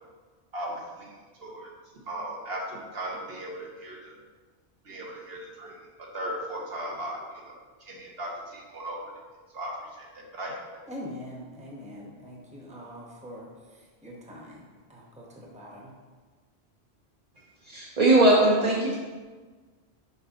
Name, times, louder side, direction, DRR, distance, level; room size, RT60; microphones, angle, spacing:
voice 1, 0.5-1.7 2.1-4.2 4.8-9.0 9.5-10.6, right 1 dB, 65° right, -2 dB, 1.2 m, -37 dB
voice 2, 10.9-14.6 14.9-15.9, equal, 5° right, -3 dB, 1.0 m, -43 dB
voice 3, 17.7-19.0, right 1 dB, 40° right, -4 dB, 0.8 m, -20 dB
6.9 x 5.2 x 2.9 m, 1.4 s
omnidirectional pair, 1.1 m